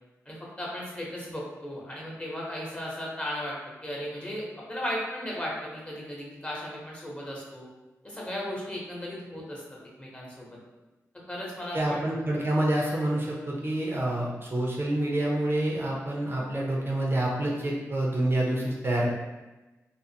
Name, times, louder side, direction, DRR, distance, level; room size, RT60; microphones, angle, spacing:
voice 1, 0.3-4.4 4.7-7.7 8.0-9.6 10.0-10.6 11.3-12.0, equal, 20° left, -4 dB, 1.0 m, -36 dB
voice 2, 11.7-19.1, right 1 dB, 40° right, -3 dB, 0.6 m, -27 dB
2.5 x 2.4 x 2.8 m, 1.1 s
cardioid pair, 50°, 6 cm